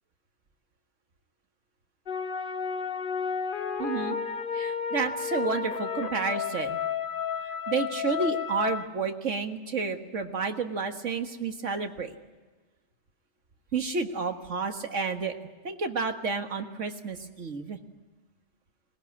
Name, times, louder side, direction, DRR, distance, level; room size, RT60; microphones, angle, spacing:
sound 1, 2.1-8.9, left 7 dB, 50° left, 1.1 m, -32 dB
voice 1, 3.8-4.2 4.5-6.8 7.7-12.2 13.7-15.3 15.6-17.8, right 4 dB, 90° right, 6 dB, 1.9 m, -30 dB
21.0 x 19.0 x 9.7 m, 1.3 s
omnidirectional pair, 1.2 m